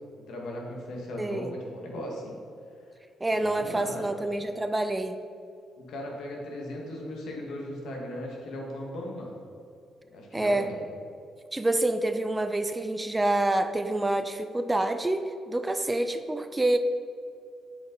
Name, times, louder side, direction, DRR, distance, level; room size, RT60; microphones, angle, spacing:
voice 1, 0.3-2.4 3.3-4.1 5.8-9.3 10.1-10.8, left 1 dB, 75° left, -1 dB, 1.6 m, -37 dB
voice 2, 1.2-1.6 3.2-5.2 10.3-10.7 11.5-16.8, right 2 dB, 15° right, 9 dB, 0.4 m, -27 dB
7.6 x 5.3 x 3.8 m, 2.4 s
cardioid pair, 90°, 0 cm